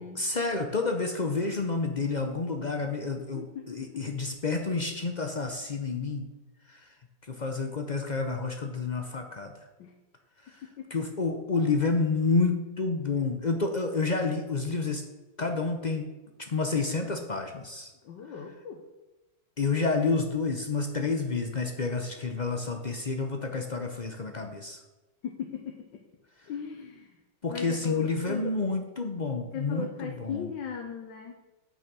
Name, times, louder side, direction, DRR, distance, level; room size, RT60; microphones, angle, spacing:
voice 1, 0.0-6.3 6.7-6.9 7.3-9.5 10.5-10.6 10.9-15.1 15.4-16.1 16.4-17.9 19.6-24.8 27.4-30.5, left 4 dB, 55° left, 4 dB, 0.5 m, -29 dB
voice 2, 3.3-3.9 9.8-9.9 10.6-11.0 18.0-18.8 25.2-26.0 26.5-27.2 27.5-28.5 29.5-31.4, left 7 dB, 85° left, 4 dB, 1.5 m, -37 dB
8.5 x 6.5 x 6.1 m, 1.1 s
omnidirectional pair, 1.9 m